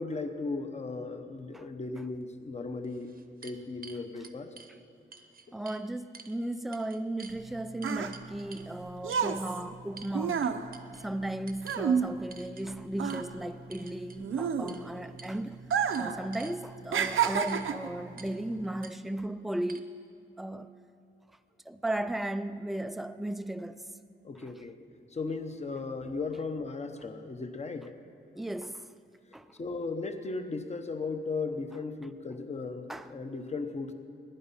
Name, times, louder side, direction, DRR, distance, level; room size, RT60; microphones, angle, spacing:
voice 1, 0.0-3.1 3.4-4.5 24.2-24.8 25.1-27.9 29.6-33.9, left 3 dB, 35° left, 0.9 m, -36 dB
sound 1, 2.2-2.3 2.8-4.7 5.1-5.8 6.1-6.4 6.7-7.4 7.8-8.7 9.1-9.3 10.0-10.4 10.7-11.1 11.5-11.9 12.3-12.7 13.1-13.2 13.7-14.2 14.7-14.8 15.2-15.4 15.7-16.6 17.2-17.7 18.2-18.4 18.8-18.9 19.7-19.8, right 5 dB, 45° right, 0.8 m, -50 dB
voice 2, 5.5-10.6 11.0-15.6 16.0-20.0 20.4-20.7 21.7-23.9 24.4-24.5 28.3-28.9 29.3-29.5 32.9-33.1, right 1 dB, ahead, 0.3 m, -36 dB
sound 2, 7.3-12.7 12.9-15.1 15.6-16.2 16.5-17.9 18.6-18.8, right 7 dB, 85° right, 0.7 m, -30 dB
21.5 x 10.5 x 5.6 m
wide cardioid pair, 175°, 20 cm